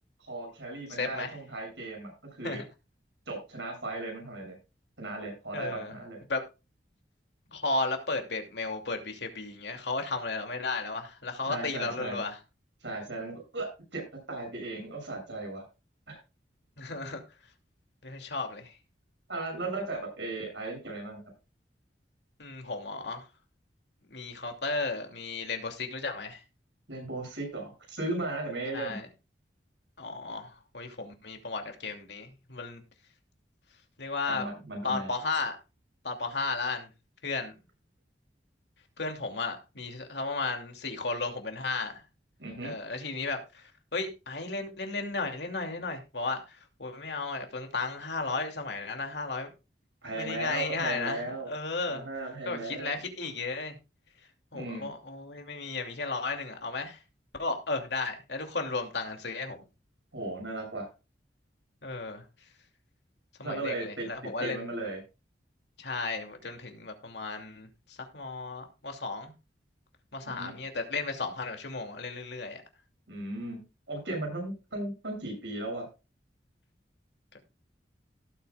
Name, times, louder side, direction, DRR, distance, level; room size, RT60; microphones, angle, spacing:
voice 1, 0.3-2.6 3.3-4.5 5.0-6.2 11.4-12.2 12.8-14.0 14.3-15.6 16.1-16.2 19.3-21.2 26.9-29.0 34.2-35.1 42.4-42.7 50.0-51.5 51.9-53.0 54.5-54.9 60.1-60.9 63.4-64.1 64.4-65.0 70.3-70.5 73.1-73.6 73.9-75.9, right 2 dB, 85° right, 1 dB, 7.3 m, -36 dB
voice 2, 0.9-1.3 2.4-2.6 5.5-5.9 6.3-6.4 7.5-12.4 16.8-17.2 18.0-18.7 22.4-23.3 24.1-26.4 28.7-29.1 30.0-32.8 34.0-34.5 34.8-35.6 36.0-36.9 37.2-37.5 39.0-42.0 42.6-49.5 50.2-52.0 52.5-53.8 54.5-57.0 57.4-59.6 61.8-62.2 63.4-64.7 65.8-69.3 70.1-72.6, left 3 dB, 70° left, 4 dB, 2.7 m, -34 dB
17.5 x 8.7 x 2.4 m, 0.29 s
head